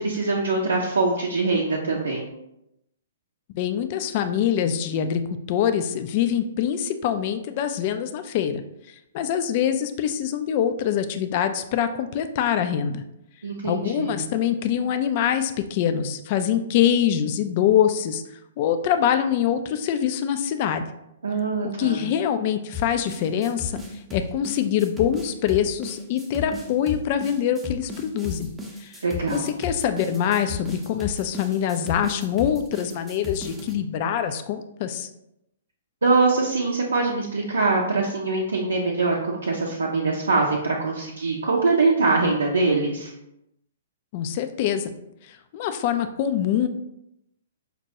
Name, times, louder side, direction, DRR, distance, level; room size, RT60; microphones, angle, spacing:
voice 1, 0.0-2.2 13.4-14.1 21.2-22.0 29.0-29.5 36.0-43.1, right 3 dB, 75° right, -2 dB, 0.5 m, -23 dB
voice 2, 3.5-5.2 5.5-8.6 9.1-13.0 13.6-18.2 18.6-20.8 21.8-23.8 24.1-28.5 28.8-29.0 29.3-35.1 44.1-44.9 45.3-46.7, left 9 dB, 45° left, 9 dB, 0.3 m, -24 dB
sound 1, 22.7-33.8, left 4 dB, 10° right, 0.6 m, -35 dB
5.3 x 2.2 x 2.8 m, 0.84 s
figure-of-eight pair, 120°, 0 cm